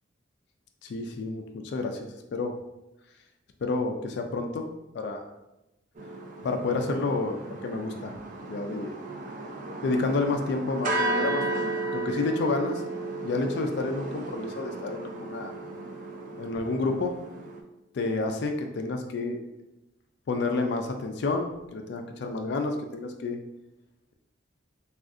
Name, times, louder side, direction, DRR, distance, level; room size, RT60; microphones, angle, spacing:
voice 1, 0.8-2.5 3.6-4.7 4.9-5.2 6.4-8.1 8.5-8.9 9.8-12.8 13.2-15.5 16.4-17.2 17.9-19.4 20.3-23.4, left 3 dB, 60° left, 4 dB, 0.3 m, -29 dB
sound 1, 6.0-17.6, right 2 dB, 40° right, 0.3 m, -34 dB
2.4 x 2.4 x 3.6 m, 0.94 s
head